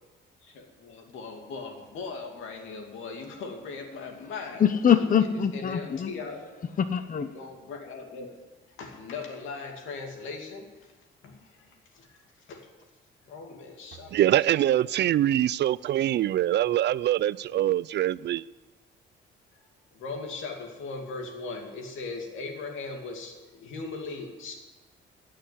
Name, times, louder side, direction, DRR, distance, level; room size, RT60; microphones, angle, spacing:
voice 1, 0.4-4.6 4.9-5.0 5.5-6.6 7.1-8.3 8.8-10.7 11.2-11.7 11.9-12.2 12.5-12.7 13.3-14.9 19.9-24.6, left 4 dB, 85° left, 2.5 m, -39 dB
voice 2, 4.6-6.1 6.8-7.3, left 8 dB, 45° left, 0.8 m, -23 dB
voice 3, 14.1-18.4, right 12 dB, 60° right, 0.4 m, -24 dB
15.5 x 6.7 x 9.5 m
cardioid pair, 90°, 20 cm